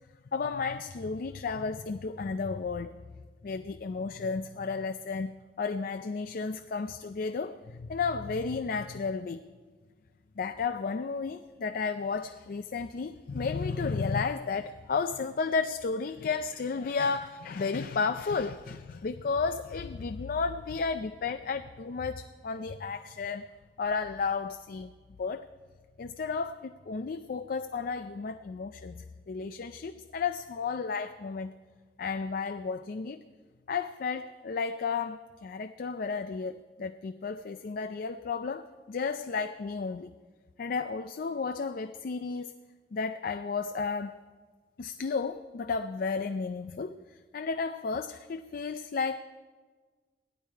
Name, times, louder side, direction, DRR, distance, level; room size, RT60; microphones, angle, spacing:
voice 1, 0.3-2.9 3.4-9.4 10.4-23.5 23.8-24.9 25.2-25.5 26.0-31.5 32.0-33.2 33.7-40.1 40.6-42.5 42.9-44.2 44.8-46.9 47.3-49.2, left 4 dB, 55° left, 9 dB, 0.4 m, -33 dB
16.5 x 11.5 x 4.6 m, 1.4 s
head